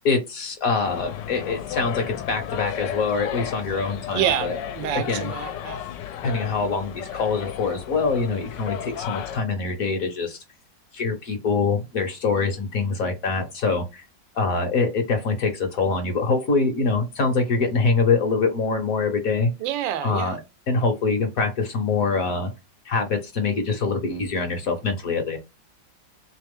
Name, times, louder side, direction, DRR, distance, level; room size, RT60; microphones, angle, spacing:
voice 1, 0.0-4.5 5.1-5.3 6.2-10.4 10.9-13.8 14.4-19.5 20.0-20.4 20.7-22.5 22.9-25.4, left 4 dB, 55° left, 1.2 m, -24 dB
sound 1, 0.8-9.4, left 10 dB, 75° left, 1.3 m, -33 dB
voice 2, 4.1-5.8 19.6-20.4, right 11 dB, 85° right, 1.3 m, -27 dB
3.2 x 3.2 x 3.6 m
omnidirectional pair, 2.0 m